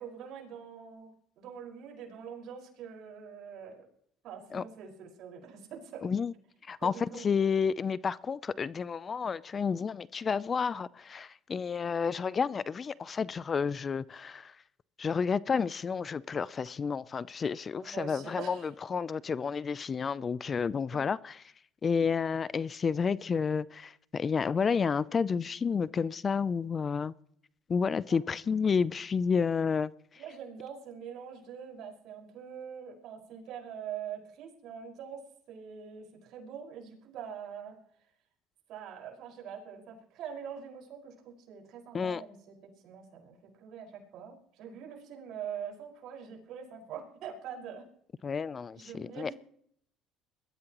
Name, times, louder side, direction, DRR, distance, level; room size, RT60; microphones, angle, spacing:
voice 1, 0.0-3.9 4.2-6.1 6.8-7.4 17.8-18.7 28.1-28.2 30.2-38.1 38.7-47.9 48.7-49.4, right 7 dB, 65° right, 5.2 m, -44 dB
voice 2, 6.0-6.3 6.6-6.9 7.2-14.6 15.0-21.4 21.8-27.1 27.7-30.2 41.9-42.2 48.2-49.3, left 6 dB, 30° left, 0.5 m, -30 dB
21.5 x 13.5 x 3.0 m
supercardioid pair, 105°, 0 cm